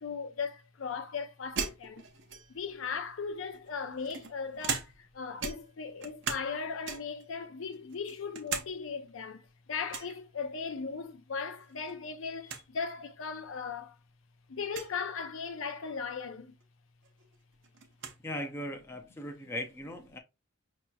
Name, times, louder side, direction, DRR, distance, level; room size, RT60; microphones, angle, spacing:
voice 1, 0.0-2.0 2.5-14.0 14.5-16.5 20.1-20.2, left 5 dB, 70° left, 0.5 m, -38 dB
sound 1, 1.6-2.7 3.5-5.1 5.4-6.5 6.8-7.2 7.7-8.7 9.0-9.1 9.9-10.2 11.6-11.9 12.2-12.3 12.5-12.7 13.5-13.6 14.6-14.9 16.6-16.7 17.0-18.2, right 6 dB, 60° right, 0.7 m, -38 dB
voice 2, 18.2-20.2, left 1 dB, 10° left, 0.5 m, -38 dB
5.3 x 2.9 x 2.3 m
head